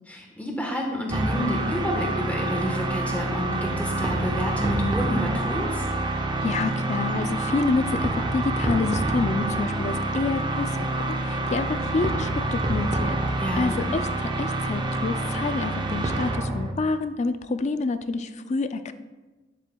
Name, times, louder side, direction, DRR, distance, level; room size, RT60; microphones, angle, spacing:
voice 1, 0.1-5.8 13.4-13.8, equal, 10° left, 0 dB, 1.2 m, -29 dB
sound 1, 1.1-16.7, right 2 dB, 25° right, 0.5 m, -27 dB
voice 2, 6.1-18.9, left 3 dB, 35° left, 11 dB, 0.3 m, -28 dB
10.0 x 7.5 x 2.3 m, 1.2 s
head